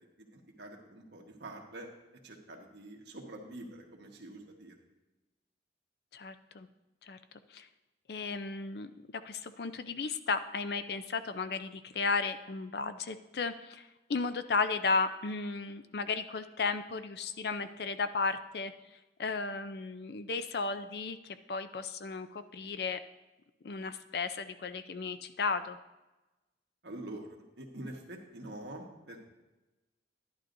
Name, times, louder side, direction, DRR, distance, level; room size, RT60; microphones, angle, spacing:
voice 1, 0.2-1.9 2.2-4.7 26.8-29.2, right 1 dB, 70° right, 1 dB, 1.5 m, -46 dB
voice 2, 6.1-6.7 7.0-7.2 7.5-7.7 8.1-18.7 19.2-23.0 23.6-25.8, left 4 dB, 60° left, 10 dB, 0.5 m, -34 dB
11.0 x 11.0 x 2.6 m, 1.1 s
head